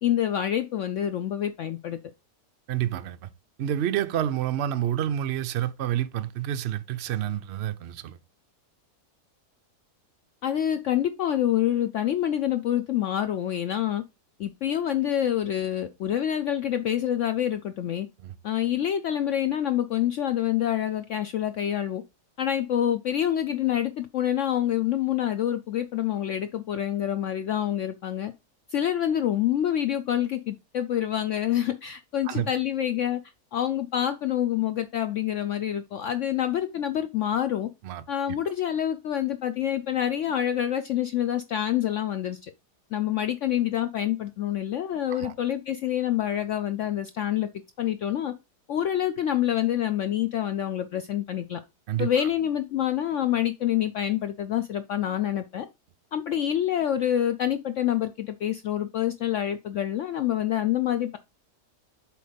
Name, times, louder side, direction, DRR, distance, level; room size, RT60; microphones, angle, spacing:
voice 1, 0.0-2.0 10.4-14.0 14.4-18.1 18.4-22.0 22.4-28.3 28.7-33.2 33.5-37.7 38.1-42.5 42.9-47.5 47.8-48.3 48.7-51.6 52.0-55.7 56.1-61.2, left 11 dB, 75° left, 0.7 m, -27 dB
voice 2, 2.7-3.3 3.6-8.2 18.2-18.3 32.2-32.5 37.8-38.0 45.1-45.3 51.9-52.3, right 11 dB, 80° right, 0.5 m, -29 dB
7.7 x 3.4 x 5.0 m
omnidirectional pair, 1.8 m